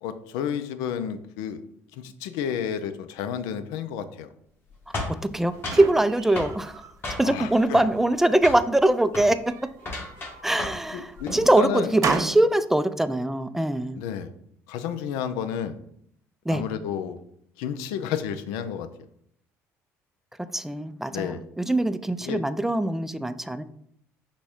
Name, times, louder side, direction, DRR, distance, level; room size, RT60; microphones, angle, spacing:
voice 1, 0.0-1.6 1.9-4.3 7.2-7.8 10.9-11.9 14.0-14.3 14.7-15.8 16.5-17.2 17.6-18.9 21.1-21.4 22.2-22.4, left 8 dB, 85° left, 11 dB, 0.4 m, -31 dB
sound 1, 4.9-5.9 6.4-6.6 7.0-7.5 7.8-8.2 8.4-8.7 9.1-9.3 9.8-10.9 11.1-11.5, left 2 dB, 35° left, 1.4 m, -33 dB
sound 2, 5.0-6.9 7.4-8.1 9.1-10.6 11.2-12.5, right 6 dB, 55° right, 0.5 m, -35 dB
voice 2, 5.2-6.8 7.2-9.5 10.4-14.0 16.5-16.6 20.4-23.6, right 1 dB, 5° right, 12 dB, 0.3 m, -23 dB
6.0 x 2.2 x 3.6 m, 0.70 s
supercardioid pair, 80°, 7 cm